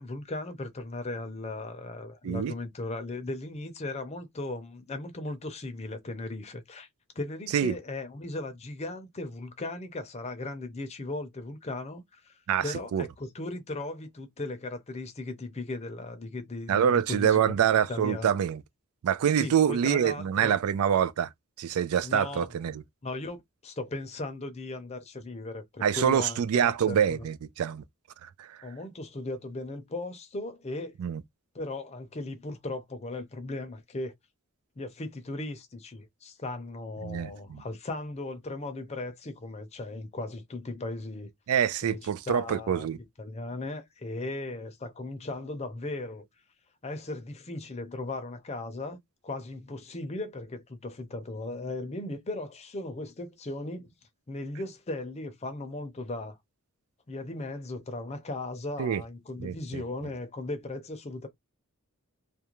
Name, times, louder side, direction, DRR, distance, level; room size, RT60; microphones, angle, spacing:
voice 1, 0.0-6.9 7.2-12.3 12.6-18.3 19.4-20.6 22.0-22.5 23.0-23.4 23.6-27.3 28.6-31.0 31.5-34.1 34.8-41.3 41.8-42.0 42.3-42.9 43.2-46.2 46.8-53.9 54.3-56.4 57.1-61.3, left 2 dB, 30° left, 0.5 m, -37 dB
voice 2, 12.5-13.1 16.7-18.6 19.0-21.3 21.6-22.8 25.8-27.8 28.2-28.6 31.0-31.2 37.0-37.6 41.5-43.0 58.8-59.0 59.4-59.8, right 8 dB, 85° right, 0.3 m, -26 dB
2.4 x 2.1 x 2.9 m
head